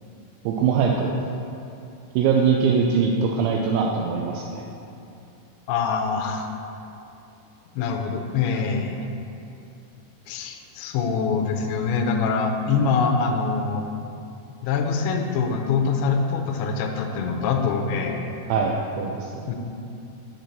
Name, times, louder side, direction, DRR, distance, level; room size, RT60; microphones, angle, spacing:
voice 1, 0.5-1.1 2.2-4.6 18.5-19.5, right 6 dB, 90° right, 0 dB, 2.6 m, -22 dB
voice 2, 5.7-6.5 7.8-9.0 10.3-13.9 14.6-18.4 19.5-19.6, left 5 dB, 80° left, 2 dB, 2.6 m, -24 dB
7.6 x 4.4 x 6.6 m, 2.7 s
omnidirectional pair, 5.7 m